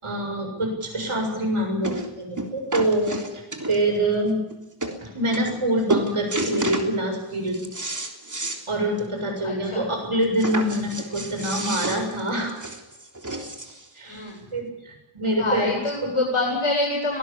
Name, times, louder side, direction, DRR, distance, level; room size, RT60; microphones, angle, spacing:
voice 1, 0.0-3.4 3.7-4.4 5.0-7.7 8.7-12.5 14.0-14.2 14.5-15.8, right 1 dB, 80° right, 3 dB, 7.0 m, -25 dB
sound 1, 1.1-1.2 1.8-2.1 2.4-4.0 4.5-4.6 4.8-5.0 5.3-5.6 5.9-6.9 7.3-8.6 9.0-9.1 9.4-9.5 10.4-13.9 14.7-14.8, right 2 dB, 35° right, 3.5 m, -30 dB
voice 2, 9.4-9.9 14.1-14.4 15.4-17.2, left 2 dB, 80° left, -1 dB, 8.0 m, -25 dB
24.0 x 19.0 x 7.2 m, 0.98 s
wide cardioid pair, 60°, 50 cm